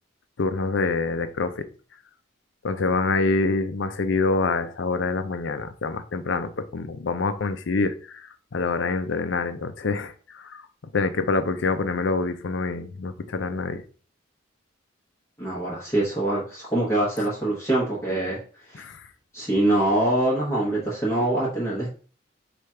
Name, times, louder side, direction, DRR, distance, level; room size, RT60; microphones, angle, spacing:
voice 1, 0.4-1.7 2.6-10.6 10.9-13.8 18.8-19.0, left 3 dB, 65° left, 0.5 m, -26 dB
voice 2, 15.4-18.4 18.7-18.8 19.3-21.9, right 1 dB, 15° left, 1.0 m, -24 dB
4.9 x 2.4 x 4.3 m
head